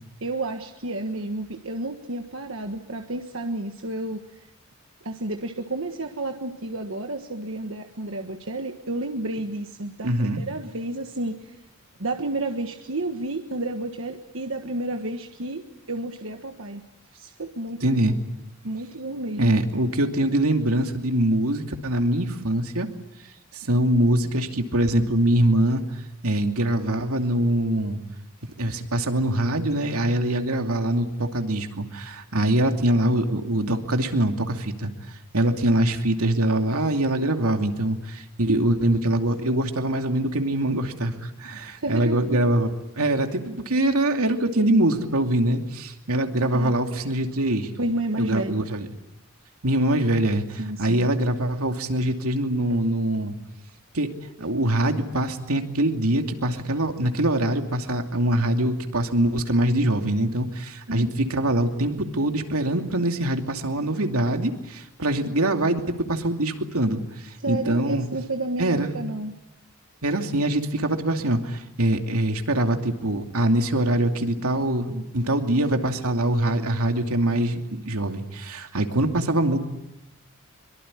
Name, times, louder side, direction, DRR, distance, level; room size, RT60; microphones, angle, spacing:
voice 1, 0.2-4.2 5.0-11.6 12.0-16.8 17.1-17.9 18.6-19.6 41.8-42.4 46.5-47.1 47.7-48.7 50.6-51.1 60.9-61.1 67.4-69.3, right 2 dB, 65° right, 4 dB, 1.6 m, -31 dB
voice 2, 10.0-10.4 17.8-18.2 19.4-22.9 23.5-25.8 26.2-28.0 28.6-34.9 35.3-42.7 43.0-47.7 48.2-48.9 49.6-53.3 53.9-54.1 54.4-68.1 68.6-68.9 70.0-79.6, right 1 dB, 80° right, 5 dB, 2.7 m, -23 dB
24.5 x 23.5 x 9.9 m, 0.90 s
head